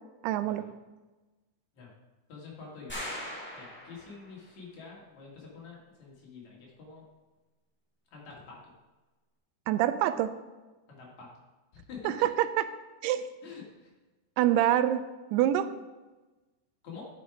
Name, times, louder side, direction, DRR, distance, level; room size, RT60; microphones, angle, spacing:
voice 1, 0.2-0.6 9.7-10.3 12.0-12.7 13.0-13.3 14.4-15.7, right 12 dB, 85° right, 12 dB, 2.5 m, -26 dB
voice 2, 2.3-3.0 3.5-7.0 8.1-8.6 10.9-11.3 11.7-12.1 13.4-13.9 16.8-17.0, left 5 dB, 50° left, -3 dB, 3.3 m, -47 dB
sound 1, 2.9-4.4, equal, 10° left, 0.5 m, -40 dB
10.0 x 6.4 x 4.9 m, 1.2 s
omnidirectional pair, 4.6 m